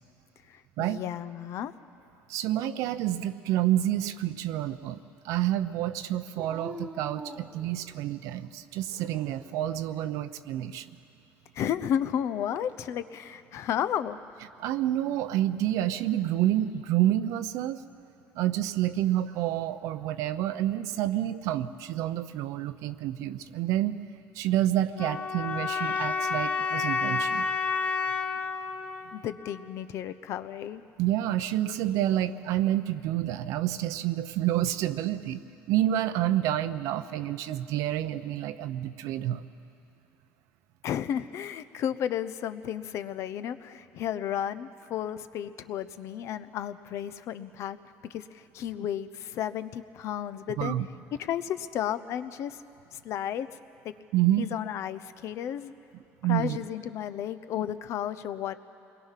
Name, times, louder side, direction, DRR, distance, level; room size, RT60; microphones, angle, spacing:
voice 1, 0.5-1.7 11.5-14.2 29.1-30.8 40.8-50.8 51.2-52.6 52.9-53.5 53.8-53.9 54.4-55.7 56.3-58.6, left 10 dB, 60° left, 12 dB, 0.8 m, -33 dB
voice 2, 2.3-5.0 5.2-10.9 14.6-17.8 18.3-23.9 24.4-27.5 31.0-35.4 35.7-39.4 50.6-50.8 54.1-54.5 56.2-56.6, right 13 dB, 75° right, 12 dB, 0.8 m, -28 dB
Dog, 6.4-8.3 8.9-9.7 12.0-12.8, right 1 dB, 20° right, 1.4 m, -45 dB
sound 1, 24.9-30.0, left 5 dB, 30° left, 1.5 m, -30 dB
28.0 x 21.0 x 5.9 m, 2.6 s
cardioid pair, 120°, 6 cm